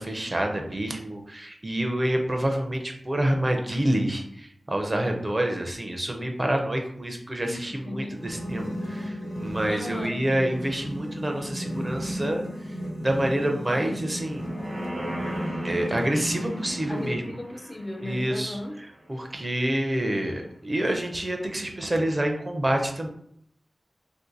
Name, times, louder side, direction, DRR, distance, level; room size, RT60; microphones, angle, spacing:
voice 1, 0.0-14.6 15.6-17.2 18.0-23.1, right 1 dB, 30° right, 3 dB, 0.5 m, -28 dB
voice 2, 7.4-8.2 9.7-10.2 13.7-14.1 16.9-18.8, left 1 dB, 20° left, 4 dB, 0.5 m, -36 dB
sound 1, 8.1-17.2, equal, 65° left, 0.8 m, -34 dB
sound 2, 14.1-19.4 19.8-19.9, right 1 dB, 70° right, 0.9 m, -40 dB
2.6 x 2.5 x 3.8 m, 0.68 s
wide cardioid pair, 95°, 0 cm